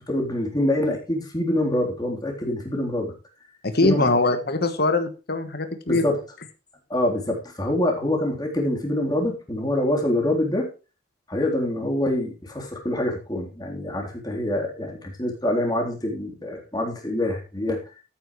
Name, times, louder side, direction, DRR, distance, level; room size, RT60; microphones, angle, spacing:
voice 1, 0.1-3.1 3.8-4.1 5.9-6.2 6.9-10.7 11.3-17.8, left 1 dB, 20° left, 0 dB, 3.6 m, -25 dB
voice 2, 3.6-6.0, left 2 dB, 50° left, 9 dB, 1.3 m, -22 dB
13.5 x 9.5 x 3.2 m, 0.32 s
head